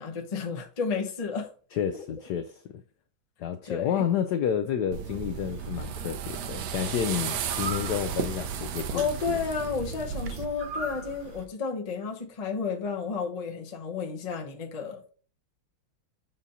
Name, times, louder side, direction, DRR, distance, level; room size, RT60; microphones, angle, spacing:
voice 1, 0.0-1.5 3.7-4.1 8.9-15.1, left 5 dB, 35° left, 0.6 m, -32 dB
voice 2, 1.7-2.8 3.4-9.4, left 9 dB, 75° left, 0.9 m, -30 dB
sound 1, 4.9-10.5, right 8 dB, 70° right, 1.1 m, -34 dB
sound 2, 5.4-11.4, right 3 dB, 35° right, 1.1 m, -41 dB
7.3 x 2.8 x 5.1 m
omnidirectional pair, 2.2 m